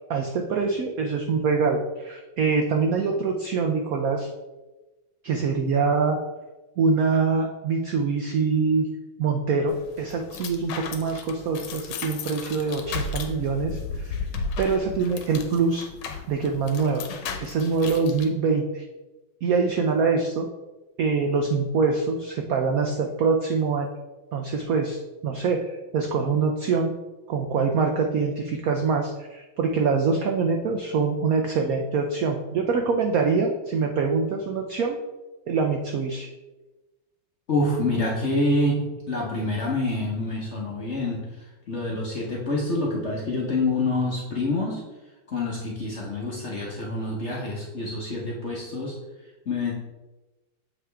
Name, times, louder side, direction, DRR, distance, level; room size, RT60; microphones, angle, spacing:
voice 1, 0.1-4.3 5.2-6.2 6.8-8.9 9.2-14.3 14.6-15.9 16.3-17.1 17.4-18.8 19.4-20.5 21.0-23.9 24.3-25.0 25.2-26.9 27.3-35.0 35.5-36.3, right 4 dB, 90° right, 3 dB, 0.7 m, -24 dB
sound 1, 9.7-18.3, left 4 dB, 80° left, 1.5 m, -35 dB
voice 2, 37.5-44.8 45.3-49.0 49.5-49.7, left 2 dB, 45° left, -3 dB, 0.9 m, -27 dB
7.4 x 4.9 x 3.3 m, 1.1 s
omnidirectional pair, 2.2 m